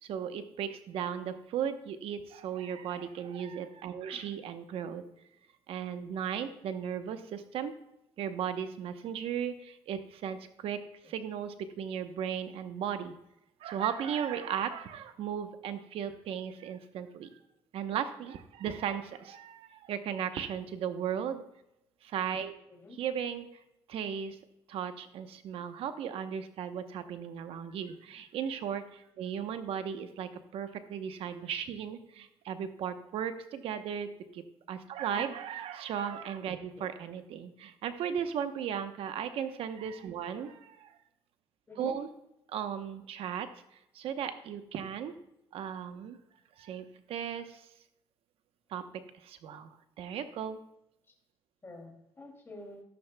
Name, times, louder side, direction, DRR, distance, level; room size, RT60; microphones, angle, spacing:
voice 1, 0.0-5.0 5.7-7.7 8.2-10.8 11.0-13.1 13.6-17.4 17.7-21.4 22.0-22.5 22.9-23.5 23.9-24.4 24.7-41.0 41.8-42.1 42.5-45.2 45.5-46.2 46.6-47.7 48.7-50.6, right 8 dB, 75° right, 9 dB, 0.9 m, -36 dB
voice 2, 51.6-52.8, left 2 dB, 25° left, 0 dB, 2.6 m, -47 dB
14.0 x 11.5 x 2.2 m, 0.84 s
cardioid pair, 95°, 10 cm